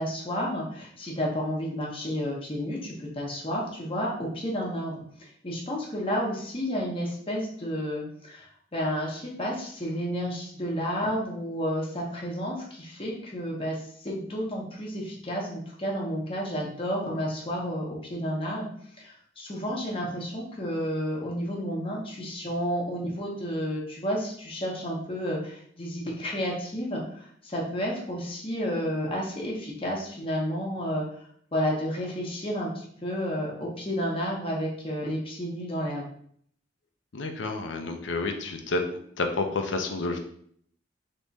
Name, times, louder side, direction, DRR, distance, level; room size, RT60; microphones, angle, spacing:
voice 1, 0.0-13.8 14.0-18.7 19.0-31.0 31.5-36.1, equal, 30° left, -3 dB, 1.1 m, -31 dB
voice 2, 37.1-38.8 39.2-40.2, left 3 dB, 85° left, 5 dB, 0.7 m, -29 dB
3.5 x 3.1 x 4.1 m, 0.63 s
head